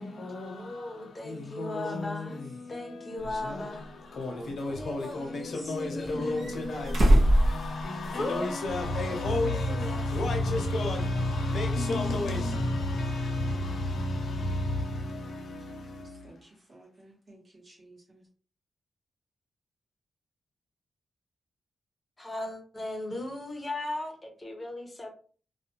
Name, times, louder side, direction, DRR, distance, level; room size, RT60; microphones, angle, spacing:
voice 1, 0.0-16.4, left 2 dB, 70° left, 0.7 m, -32 dB
voice 2, 0.6-2.4 2.7-3.9 4.5-7.2 8.1-8.8 9.1-10.1 22.2-25.1, left 1 dB, 15° left, 0.7 m, -37 dB
voice 3, 1.4-2.1 7.4-7.5 15.6-18.3, right 1 dB, 35° right, 1.0 m, -54 dB
sound 1, 3.2-3.3 4.2-5.1 6.0-8.4 8.7-8.8 10.3-10.4, right 1 dB, 60° right, 0.8 m, -25 dB
2.5 x 2.2 x 2.9 m
wide cardioid pair, 155°, 0 cm